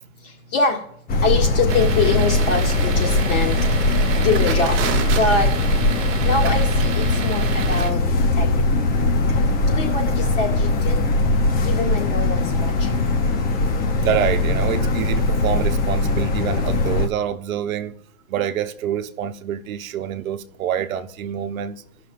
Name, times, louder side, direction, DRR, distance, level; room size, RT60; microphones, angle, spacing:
sound 1, 1.1-17.1, left 2 dB, 20° left, 0.7 m, -20 dB
voice 1, 1.2-3.6 4.2-4.8 5.2-5.5 6.2-8.0 8.4-8.5 9.7-11.0 11.6-12.9, left 3 dB, 35° left, 2.1 m, -23 dB
sound 2, 1.7-7.9, right 8 dB, 30° right, 1.3 m, -30 dB
voice 2, 14.0-17.9 18.3-21.8, right 9 dB, 70° right, 0.8 m, -26 dB
17.0 x 6.0 x 2.5 m
hypercardioid pair, 120°, 42 cm